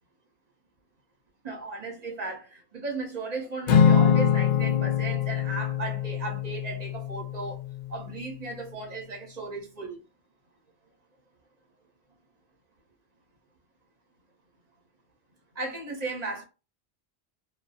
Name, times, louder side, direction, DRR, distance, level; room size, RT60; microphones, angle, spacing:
voice 1, 1.4-7.6 7.9-10.0 15.5-16.4, right 3 dB, 40° right, 0.8 m, -36 dB
Acoustic guitar / Strum, 3.7-8.1, left 8 dB, 90° left, 0.9 m, -24 dB
2.6 x 2.2 x 2.3 m
omnidirectional pair, 1.1 m